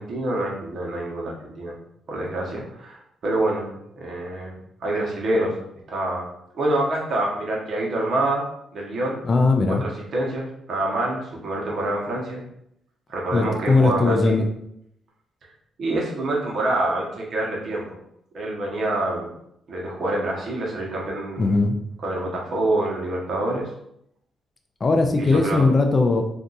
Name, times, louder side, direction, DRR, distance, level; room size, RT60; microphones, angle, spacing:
voice 1, 0.0-1.7 2.1-4.6 4.8-5.5 5.9-6.3 6.5-8.4 8.7-9.2 9.7-12.4 13.1-14.4 15.8-17.8 18.3-19.3 19.7-21.5 22.0-23.7 25.2-25.6, right 1 dB, 55° right, -2 dB, 1.0 m, -26 dB
voice 2, 9.2-9.8 13.3-14.5 21.4-21.8 24.8-26.2, left 3 dB, 30° left, 4 dB, 0.4 m, -19 dB
2.6 x 2.4 x 4.0 m, 0.75 s
cardioid pair, 110°, 0 cm